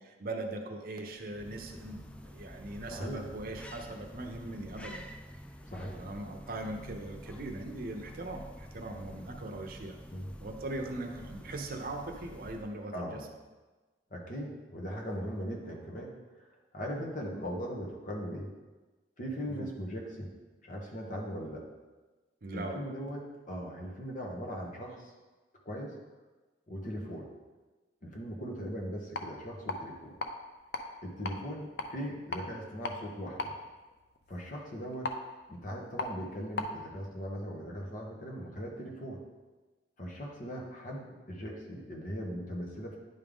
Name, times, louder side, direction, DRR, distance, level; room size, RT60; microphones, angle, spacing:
voice 1, 0.2-2.0 2.2-5.1 5.9-10.0 10.4-13.3 19.5-19.7 22.4-22.8, right 2 dB, 55° right, 3 dB, 0.7 m, -40 dB
sound 1, 1.1-12.9, equal, 5° left, 0.3 m, -48 dB
voice 2, 2.9-3.2 5.6-6.0 10.1-10.3 12.9-13.2 14.1-16.1 16.4-16.5 16.7-18.5 19.2-20.3 20.6-21.6 22.5-23.2 23.5-25.1 25.6-25.9 26.7-27.3 28.0-30.1 31.0-33.5 34.3-35.1 35.5-39.2 40.0-43.0, equal, 50° left, -1 dB, 1.2 m, -39 dB
sound 2, 29.0-36.8, left 2 dB, 65° left, 0.6 m, -41 dB
10.0 x 3.7 x 3.6 m, 1.2 s
head